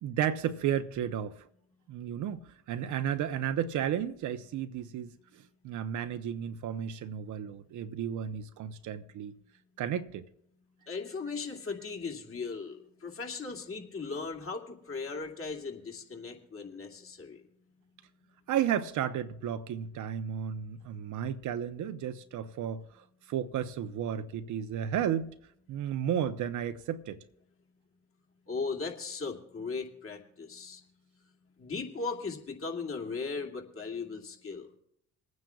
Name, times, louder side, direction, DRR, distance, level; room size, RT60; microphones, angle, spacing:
voice 1, 0.0-1.4 1.9-2.4 2.7-9.3 9.8-10.2 18.5-25.3 25.7-27.2, right 9 dB, 65° right, 0.9 m, -33 dB
voice 2, 10.9-17.4 28.5-30.8 31.6-34.7, left 4 dB, 40° left, 2.6 m, -37 dB
27.5 x 9.3 x 2.4 m
hypercardioid pair, 60°, 33 cm